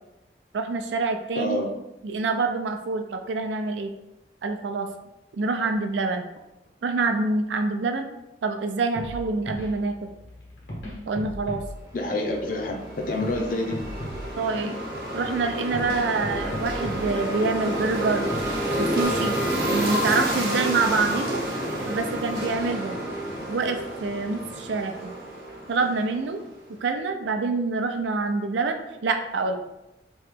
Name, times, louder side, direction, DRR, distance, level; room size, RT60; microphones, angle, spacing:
voice 1, 0.5-1.6 2.0-3.9 4.4-4.9 5.3-6.3 6.8-8.1 8.4-10.1 11.1-11.6 13.1-13.2 14.4-14.8 15.1-18.3 18.8-19.4 19.7-21.4 21.8-23.0 23.5-25.2 25.7-26.4 26.8-29.6, right 3 dB, 90° right, 5 dB, 0.4 m, -26 dB
voice 2, 1.4-1.7 11.9-13.8, left 1 dB, 50° left, 2 dB, 0.5 m, -28 dB
sound 1, 8.9-19.0, equal, 85° left, 1.4 m, -38 dB
sound 2, 12.1-26.4, equal, 55° right, 0.9 m, -29 dB
3.0 x 2.8 x 3.6 m, 0.92 s
head